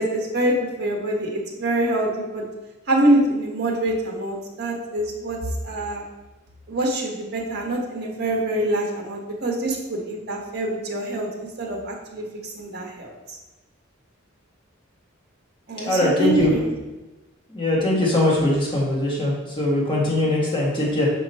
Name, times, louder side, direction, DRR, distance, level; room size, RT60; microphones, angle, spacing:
voice 1, 0.0-2.4 2.9-5.4 5.6-6.0 6.7-12.2 12.5-13.1 15.7-16.7, right 1 dB, 50° right, 0 dB, 1.2 m, -25 dB
voice 2, 15.8-16.5 17.5-21.1, left 1 dB, 25° left, -5 dB, 1.6 m, -21 dB
6.1 x 3.0 x 5.4 m, 1.1 s
head